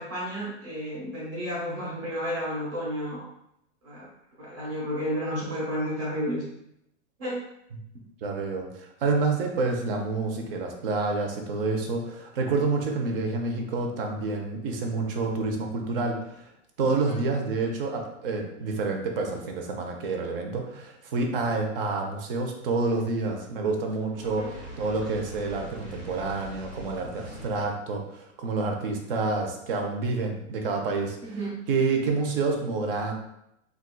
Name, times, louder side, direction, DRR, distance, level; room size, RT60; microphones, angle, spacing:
voice 1, 0.0-3.3 3.8-4.1 4.4-6.4 7.2-7.4 17.1-17.2 24.4-24.5 31.2-31.6, equal, 30° right, -7 dB, 1.1 m, -32 dB
voice 2, 8.2-16.5 16.8-31.4 31.7-33.1, right 3 dB, 50° right, 2 dB, 0.6 m, -28 dB
Fire, 24.1-27.8, equal, ahead, 1.0 m, -42 dB
4.1 x 2.4 x 2.2 m, 0.79 s
supercardioid pair, 170°, 38 cm